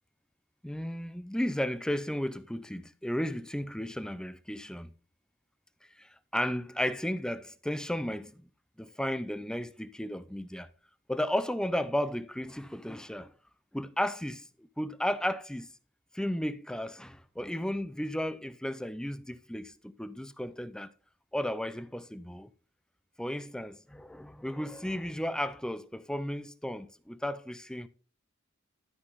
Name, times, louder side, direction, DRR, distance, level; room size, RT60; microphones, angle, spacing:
voice 1, 0.6-4.9 6.0-8.5 8.8-10.7 11.1-13.3 13.7-14.5 14.8-15.7 16.1-20.9 21.3-22.5 23.2-27.9, equal, 5° left, 0.5 m, -34 dB
12.5 x 6.0 x 3.9 m
head